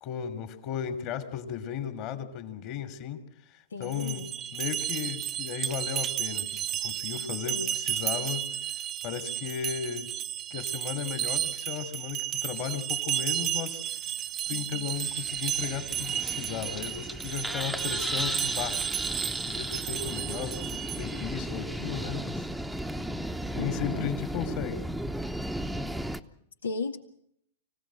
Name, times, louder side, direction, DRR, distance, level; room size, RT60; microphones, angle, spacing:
voice 1, 0.0-4.2 4.5-8.5 9.0-10.1 10.5-13.8 14.5-18.8 19.5-22.5 23.5-24.9, left 9 dB, 45° left, 9 dB, 3.0 m, -35 dB
voice 2, 3.7-4.3 7.5-7.8 14.5-14.9 23.6-24.1 26.6-27.0, left 4 dB, 85° left, 7 dB, 1.9 m, -36 dB
sound 1, 3.8-21.3, right 11 dB, 30° right, 0.9 m, -33 dB
sound 2, 14.9-26.2, right 1 dB, ahead, 0.9 m, -35 dB
25.0 x 16.5 x 7.7 m, 0.72 s
hypercardioid pair, 115°, 0 cm